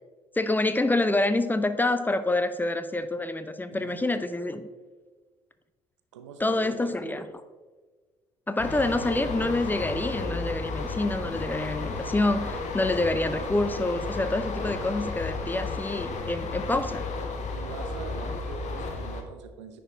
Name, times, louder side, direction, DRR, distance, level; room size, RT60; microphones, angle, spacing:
voice 1, 0.4-4.7 6.4-7.2 8.5-17.1, left 2 dB, 10° left, 11 dB, 0.5 m, -27 dB
voice 2, 3.7-4.2 6.1-7.2 17.5-19.8, right 6 dB, 75° right, 8 dB, 0.6 m, -43 dB
sound 1, 8.6-19.2, left 3 dB, 50° left, 1.0 m, -33 dB
9.8 x 4.8 x 3.6 m, 1.3 s
figure-of-eight pair, 45°, 16 cm